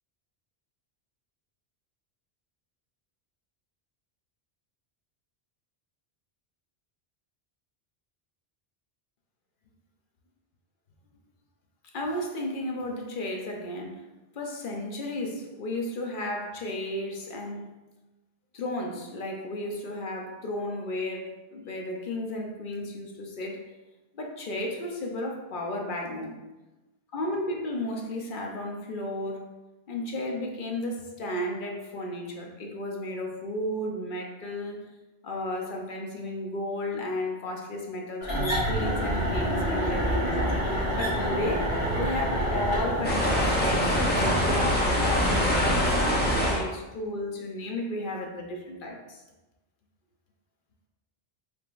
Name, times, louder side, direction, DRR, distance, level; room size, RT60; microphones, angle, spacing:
voice 1, 11.9-14.0 14.3-17.7 18.5-23.6 24.1-26.4 27.1-29.5 29.9-34.8 35.2-41.7 41.9-49.2, left 1 dB, 60° left, 1 dB, 0.8 m, -33 dB
sound 1, 38.2-44.6, equal, 80° left, 1.7 m, -28 dB
sound 2, 43.0-46.6, equal, 10° left, 0.6 m, -24 dB
4.8 x 3.5 x 2.5 m, 1.1 s
omnidirectional pair, 1.0 m